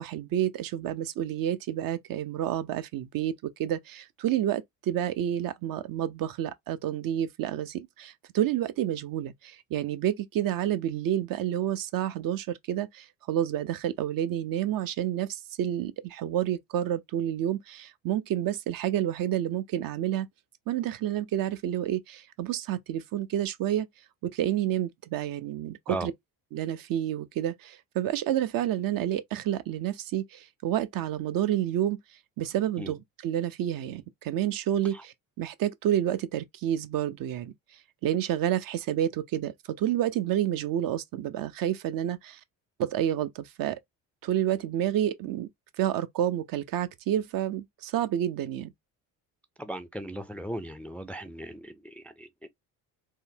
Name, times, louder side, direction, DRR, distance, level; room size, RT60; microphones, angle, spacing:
voice 1, 0.0-3.3 3.6-20.3 20.7-23.9 24.2-26.1 26.5-32.0 32.4-37.5 38.0-42.4 42.8-43.8 44.2-45.5 45.8-48.7, right 11 dB, 60° right, 0.5 m, -29 dB
voice 2, 49.6-52.5, right 1 dB, 5° left, 0.3 m, -37 dB
3.7 x 2.1 x 2.6 m
supercardioid pair, 75°, 40 cm